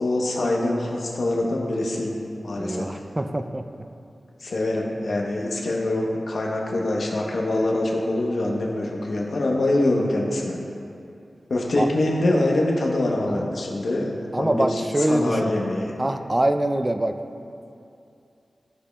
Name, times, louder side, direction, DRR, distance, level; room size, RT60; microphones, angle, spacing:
voice 1, 0.0-3.0 4.4-10.6 11.5-14.1 14.4-15.9, left 1 dB, 70° left, -2 dB, 0.8 m, -24 dB
voice 2, 2.6-3.7 11.8-11.9 13.3-13.4 14.3-15.5 16.0-17.1, right 1 dB, 20° right, 8 dB, 0.3 m, -24 dB
12.5 x 5.0 x 2.3 m, 2.6 s
wide cardioid pair, 105°, 0 cm